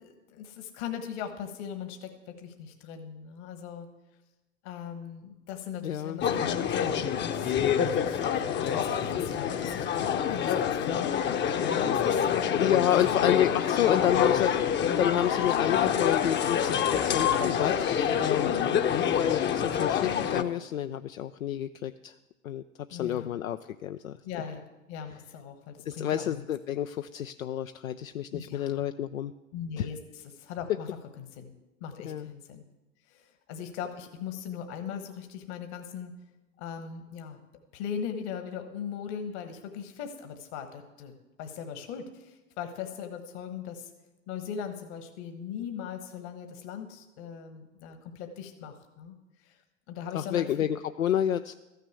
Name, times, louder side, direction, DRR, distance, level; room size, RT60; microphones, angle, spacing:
voice 1, 0.0-3.9 4.6-7.5 7.9-12.6 12.9-13.3 18.5-18.8 22.9-23.4 24.2-26.8 28.3-28.9 29.5-31.5 31.8-32.6 33.1-36.2 36.6-37.4 37.7-41.1 41.4-43.9 44.3-49.2 49.4-49.6 49.9-50.7, left 7 dB, 55° left, 7 dB, 1.4 m, -40 dB
voice 2, 5.8-6.2 12.6-18.5 19.1-22.1 22.4-22.6 22.9-24.2 25.9-29.3 29.8-29.9 30.7-30.8 32.0-32.3 50.1-51.5, left 11 dB, 85° left, 9 dB, 0.5 m, -29 dB
sound 1, 6.2-20.4, left 8 dB, 30° left, 0.7 m, -26 dB
14.0 x 6.7 x 8.2 m, 1.1 s
figure-of-eight pair, 80°, 39 cm